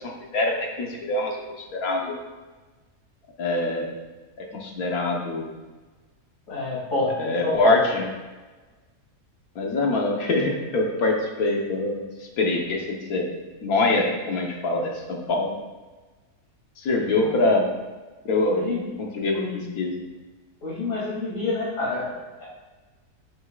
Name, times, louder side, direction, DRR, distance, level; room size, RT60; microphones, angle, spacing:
voice 1, 0.0-1.4 1.7-2.2 3.4-3.9 4.4-5.5 7.2-8.1 9.5-12.0 12.4-13.3 13.6-15.5 16.8-17.7 18.2-18.7 19.0-19.3 19.8-20.1, left 2 dB, 80° left, 0 dB, 1.7 m, -24 dB
voice 2, 6.5-7.8 17.1-17.4 18.5-18.9 19.3-19.6 20.6-22.5, left 2 dB, 60° left, -6 dB, 3.1 m, -28 dB
12.0 x 6.7 x 2.4 m, 1.3 s
omnidirectional pair, 1.5 m